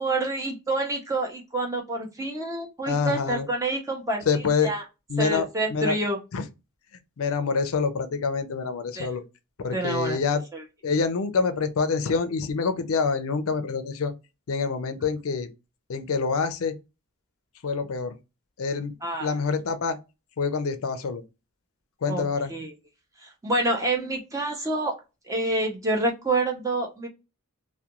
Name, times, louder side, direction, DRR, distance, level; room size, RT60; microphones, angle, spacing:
voice 1, 0.0-4.8 5.2-6.2 9.0-9.1 9.7-10.2 10.5-10.6 19.0-19.3 22.1-22.2 22.5-22.7 23.2-25.0 25.3-27.1, right 2 dB, 15° right, 0.6 m, -27 dB
voice 2, 2.9-3.5 4.3-4.7 5.1-6.0 6.3-6.4 7.2-9.2 9.6-10.4 10.8-14.1 14.5-15.5 15.9-16.7 17.6-18.1 18.6-18.9 19.2-20.0 20.4-21.2 22.0-22.5, left 5 dB, 65° left, 0.4 m, -26 dB
2.3 x 2.2 x 2.8 m
head